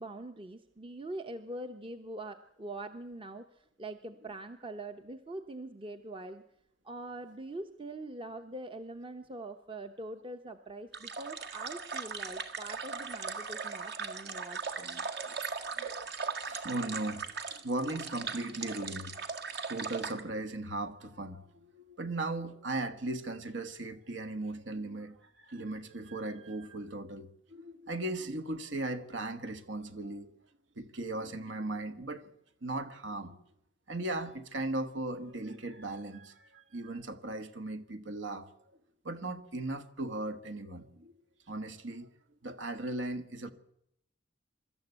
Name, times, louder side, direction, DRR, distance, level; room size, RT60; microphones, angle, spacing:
voice 1, 0.0-6.4 6.8-15.1, right 2 dB, 30° right, 0.8 m, -43 dB
sound 1, 10.9-20.2, right 5 dB, 60° right, 1.9 m, -39 dB
voice 2, 16.4-19.1 19.7-30.3 30.8-32.2 32.6-33.4 33.9-38.5 39.0-41.1 41.5-42.1 42.4-43.5, right 2 dB, 80° right, 1.6 m, -37 dB
24.5 x 13.0 x 8.2 m
head